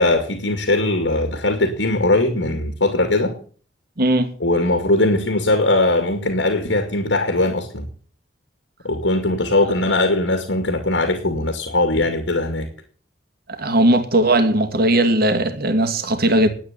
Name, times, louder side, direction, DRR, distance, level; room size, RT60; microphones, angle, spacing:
voice 1, 0.0-3.3 4.4-7.9 8.8-12.7, left 2 dB, 80° left, 2.5 m, -20 dB
voice 2, 4.0-4.3 13.5-16.5, right 1 dB, 55° right, 2.3 m, -18 dB
11.5 x 9.3 x 8.6 m
head